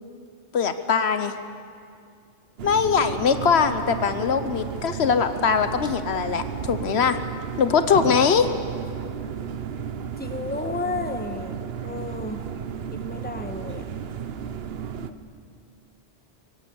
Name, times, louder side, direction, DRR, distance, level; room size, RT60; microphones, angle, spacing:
voice 1, 0.5-1.3 2.6-7.2 7.6-8.5, left 6 dB, 70° left, 10 dB, 1.1 m, -21 dB
sound 1, 2.6-15.1, right 7 dB, 65° right, 1.0 m, -33 dB
voice 2, 10.2-11.6 11.8-12.4 12.9-13.8, left 3 dB, 10° left, 6 dB, 1.2 m, -32 dB
24.5 x 17.5 x 7.0 m, 2.3 s
omnidirectional pair, 1.1 m